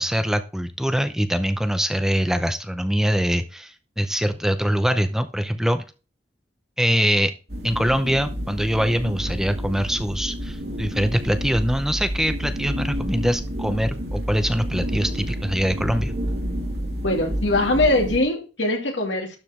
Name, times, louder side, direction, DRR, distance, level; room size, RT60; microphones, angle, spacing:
voice 1, 0.0-5.8 6.8-7.3 7.6-16.1, equal, 5° right, 0.6 m, -23 dB
sound 1, 7.5-18.2, equal, 60° right, 2.4 m, -29 dB
voice 2, 17.0-19.4, left 2 dB, 80° left, 2.5 m, -22 dB
12.0 x 4.9 x 3.6 m
head